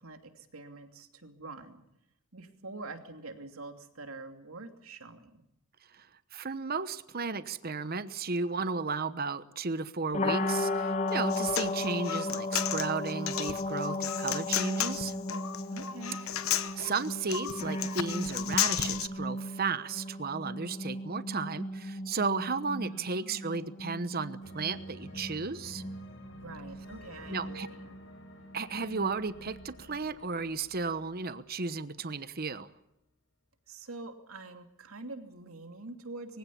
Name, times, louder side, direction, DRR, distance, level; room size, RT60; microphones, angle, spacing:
voice 1, 0.0-1.8 2.3-5.4 15.7-16.2 22.8-24.0 26.3-28.0 33.7-36.4, right 2 dB, 80° right, 6 dB, 2.8 m, -46 dB
voice 2, 6.3-15.1 16.8-25.8 27.3-27.7 28.5-32.7, right 4 dB, 45° right, 13 dB, 1.1 m, -34 dB
sound 1, 10.1-30.0, left 2 dB, 35° left, 1.8 m, -36 dB
Human voice, 11.1-19.1, left 10 dB, 75° left, 1.1 m, -33 dB
sound 2, 24.4-32.0, left 1 dB, 60° left, 6.6 m, -52 dB
23.5 x 16.5 x 8.5 m, 0.86 s
head